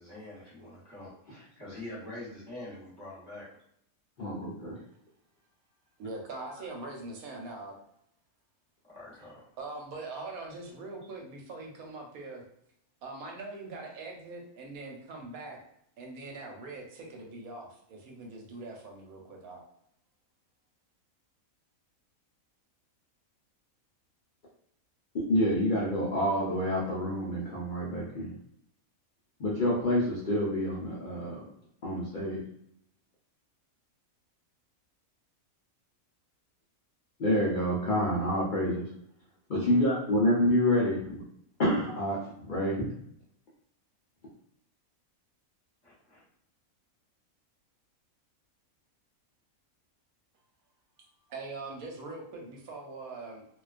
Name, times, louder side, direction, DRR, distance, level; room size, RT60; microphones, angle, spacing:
voice 1, 0.0-3.5 8.9-9.4 45.8-46.2, left 1 dB, 20° left, -8 dB, 0.9 m, -45 dB
voice 2, 4.2-4.8 25.1-28.3 29.4-31.4 31.8-32.4 37.2-38.9 39.5-41.2 41.6-42.9, left 1 dB, 65° left, -5 dB, 0.4 m, -28 dB
voice 3, 6.0-7.7 9.6-12.4 13.0-15.6 16.0-19.6 51.3-53.4, right 3 dB, 85° right, 0 dB, 1.1 m, -42 dB
2.3 x 2.2 x 2.4 m, 0.72 s
omnidirectional pair, 1.5 m